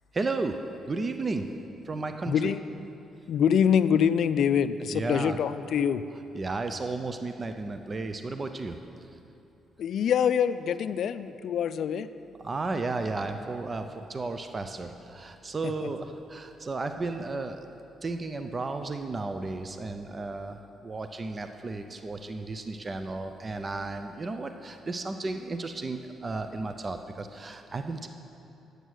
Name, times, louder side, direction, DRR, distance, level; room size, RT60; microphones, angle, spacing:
voice 1, 0.1-0.6 0.9-1.5 1.8-2.5 4.9-5.4 6.3-8.8 12.4-17.7 18.0-28.1, right 3 dB, 30° right, 7 dB, 0.5 m, -33 dB
voice 2, 2.3-2.6 3.3-6.0 9.8-12.1 15.6-15.7, left 8 dB, 70° left, 14 dB, 0.3 m, -25 dB
9.1 x 8.0 x 6.3 m, 2.8 s
cardioid pair, 90°, 0 cm